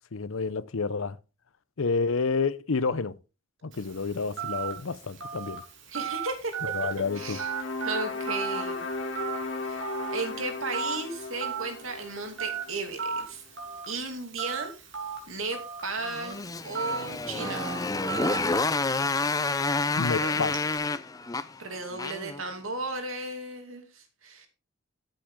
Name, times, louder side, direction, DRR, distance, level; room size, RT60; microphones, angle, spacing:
voice 1, 0.1-1.2 1.8-3.2 3.6-5.6 6.7-7.4 20.0-20.6, left 4 dB, 85° left, 0.7 m, -29 dB
Telephone, 3.7-20.8, right 7 dB, 65° right, 3.2 m, -37 dB
voice 2, 5.9-6.5 6.8-6.9 7.1-7.5 7.8-8.9 9.7-9.8 10.1-13.4 13.9-14.8 15.3-16.4 16.6-17.9 20.1-20.4 21.6-24.5, right 3 dB, 85° right, 2.7 m, -35 dB
sound 1, 6.9-13.2, left 3 dB, 70° left, 2.2 m, -36 dB
Motorcycle, 16.1-22.4, left 3 dB, 15° left, 0.5 m, -29 dB
13.5 x 7.8 x 3.7 m
head